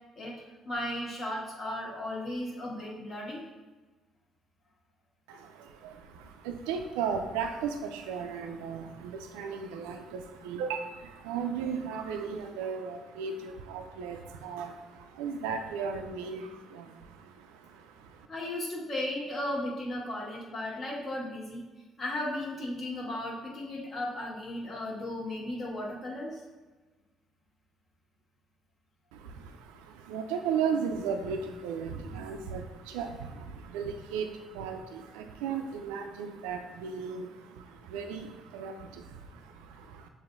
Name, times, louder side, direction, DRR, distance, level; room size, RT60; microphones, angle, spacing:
voice 1, 0.6-3.4 18.3-21.6 22.0-26.4 33.0-33.1, left 1 dB, 45° left, -3 dB, 1.4 m, -35 dB
voice 2, 5.3-18.3 29.1-40.1, right 6 dB, 85° right, 5 dB, 0.3 m, -36 dB
6.9 x 2.6 x 2.5 m, 1.3 s
supercardioid pair, 65°, 0 cm